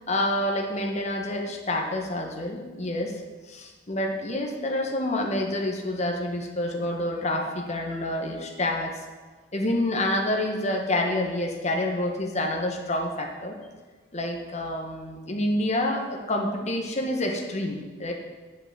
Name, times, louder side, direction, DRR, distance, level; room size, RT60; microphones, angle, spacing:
voice 1, 0.1-3.1 3.5-9.0 9.5-13.5 14.1-18.1, left 1 dB, 40° left, 1 dB, 1.4 m, -28 dB
8.1 x 5.9 x 7.5 m, 1.3 s
head